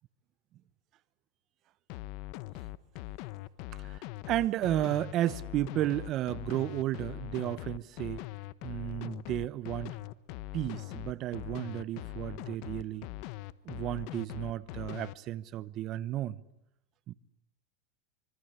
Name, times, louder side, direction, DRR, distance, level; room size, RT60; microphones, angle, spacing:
sound 1, 1.9-15.1, left 17 dB, 55° left, 1.0 m, -41 dB
voice 1, 3.7-8.2 8.6-10.0 10.5-13.1 13.6-16.4 17.1-17.2, right 13 dB, 40° right, 1.0 m, -33 dB
25.5 x 25.0 x 8.4 m
supercardioid pair, 140°, 0 cm